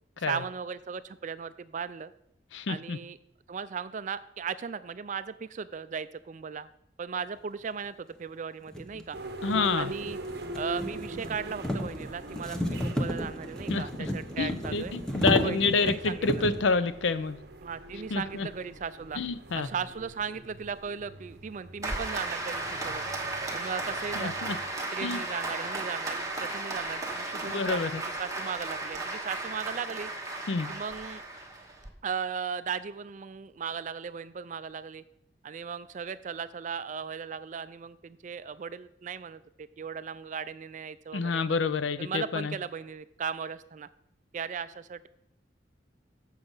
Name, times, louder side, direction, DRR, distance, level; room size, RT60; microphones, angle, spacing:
voice 1, 0.2-2.1 2.7-3.2 3.5-6.7 7.0-9.2 9.8-10.2 10.5-14.9 15.4-16.4 17.6-19.2 19.6-23.0 23.5-24.5 24.9-30.1 30.7-31.2 32.0-35.0 35.4-41.4 42.0-43.9 44.3-45.1, right 6 dB, 40° right, 15 dB, 0.4 m, -37 dB
voice 2, 2.5-3.0 9.4-9.9 13.7-14.1 14.4-17.4 18.1-18.5 19.1-19.7 24.2-24.6 25.0-25.2 27.5-28.0 30.5-30.7 41.1-42.5, left 4 dB, 75° left, 14 dB, 0.5 m, -28 dB
sound 1, 7.9-8.0 8.7-16.7, equal, 5° left, 0.9 m, -33 dB
sound 2, 9.1-24.7, right 2 dB, 55° right, 0.8 m, -43 dB
Applause, 21.8-31.9, right 2 dB, 15° right, 1.2 m, -35 dB
8.0 x 6.5 x 5.4 m, 0.75 s
head